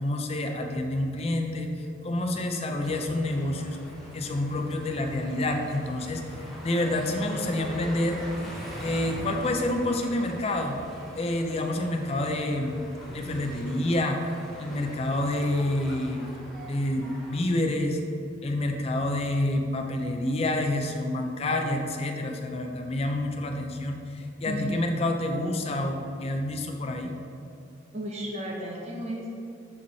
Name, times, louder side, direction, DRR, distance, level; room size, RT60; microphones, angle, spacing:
voice 1, 0.0-1.7 2.0-3.8 4.1-6.2 6.6-8.2 8.8-10.8 11.1-12.8 13.1-14.3 14.6-16.2 16.7-18.0 18.4-27.1, left 1 dB, 30° left, 4 dB, 0.4 m, -28 dB
sound 1, 2.8-17.4, equal, ahead, 0.9 m, -42 dB
voice 2, 24.4-24.9 27.9-29.3, equal, 35° right, -2 dB, 0.8 m, -33 dB
8.5 x 3.1 x 4.1 m, 2.5 s
head